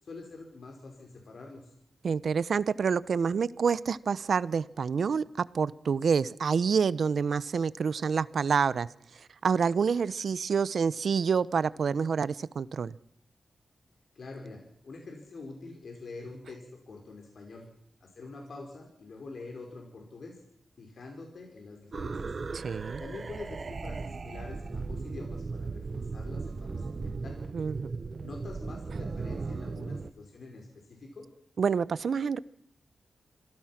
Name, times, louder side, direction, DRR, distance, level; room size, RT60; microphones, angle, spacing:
voice 1, 0.0-1.7 14.1-17.7 18.0-20.4 20.8-22.4 23.0-27.4 28.2-31.2, left 3 dB, 65° left, 5.1 m, -45 dB
voice 2, 2.0-5.2 5.5-8.9 9.4-12.9 22.5-23.0 27.5-27.9 31.6-32.4, right 6 dB, 70° right, 0.8 m, -27 dB
Deep space wave, 21.9-30.1, right 4 dB, 45° right, 1.0 m, -37 dB
26.5 x 17.5 x 6.0 m
wide cardioid pair, 105°, 0 cm